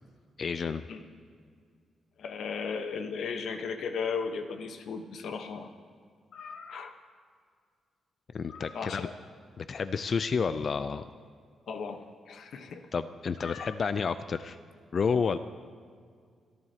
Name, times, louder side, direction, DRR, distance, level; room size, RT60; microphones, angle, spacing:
voice 1, 0.4-0.8 8.3-9.1 9.6-11.0 12.9-14.6 14.9-15.4, left 5 dB, 40° left, 12 dB, 0.3 m, -30 dB
voice 2, 2.2-5.8 6.3-6.9 8.5-9.2 11.7-12.9 13.4-13.7, left 5 dB, 65° left, 7 dB, 1.0 m, -36 dB
29.0 x 11.0 x 2.8 m, 2.1 s
wide cardioid pair, 165°, 0 cm